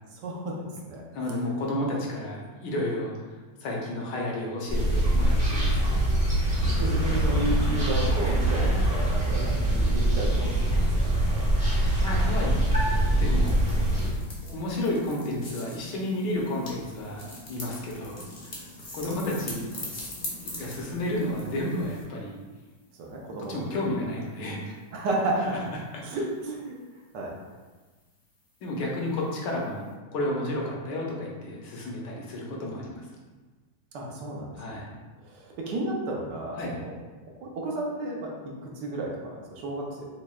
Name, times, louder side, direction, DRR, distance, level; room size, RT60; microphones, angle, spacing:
voice 1, 0.1-0.5 0.8-1.0 1.4-1.5 6.8-11.1 23.0-24.0 24.9-25.4 26.0-26.8 27.1-27.3 33.9-34.9 35.2-37.0 37.4-38.3 38.6-40.1, right 2 dB, 75° right, -1 dB, 1.3 m, -32 dB
voice 2, 1.1-3.3 3.6-6.0 12.0-12.5 13.2-13.8 14.4-18.6 18.9-19.7 20.2-22.4 23.5-24.8 25.4-25.8 28.6-29.8 30.1-33.1 34.5-34.9 36.6-36.8, left 1 dB, 75° left, -2 dB, 1.3 m, -32 dB
sound 1, 4.7-14.1, right 1 dB, 10° right, 0.5 m, -23 dB
sound 2, 13.5-22.1, left 1 dB, 45° left, 0.7 m, -42 dB
6.0 x 2.1 x 2.3 m, 1.3 s
omnidirectional pair, 1.9 m